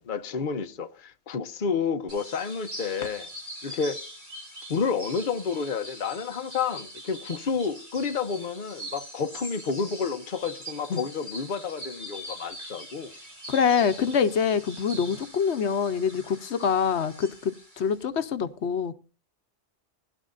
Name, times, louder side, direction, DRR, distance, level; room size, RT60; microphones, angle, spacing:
voice 1, 0.0-3.3 3.6-4.0 4.7-13.1, left 5 dB, 50° left, 1.0 m, -30 dB
sound 1, 2.1-18.0, equal, 45° right, 7.0 m, -43 dB
voice 2, 13.5-18.9, left 6 dB, 75° left, 1.1 m, -25 dB
21.0 x 12.0 x 2.5 m
omnidirectional pair, 1.1 m